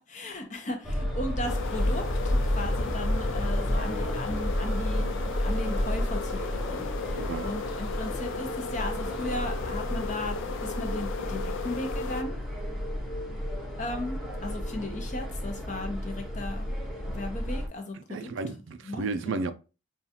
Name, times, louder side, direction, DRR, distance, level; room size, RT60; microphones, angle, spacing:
voice 1, 0.0-12.4 13.8-16.7 17.1-18.3 18.9-19.5, left 1 dB, 40° left, 0.8 m, -36 dB
sound 1, 0.8-17.7, equal, ahead, 0.7 m, -31 dB
sound 2, 1.4-12.2, left 4 dB, 80° left, 0.4 m, -36 dB
voice 2, 7.1-7.5 18.1-19.5, right 4 dB, 75° right, 0.4 m, -33 dB
5.4 x 2.4 x 2.8 m
head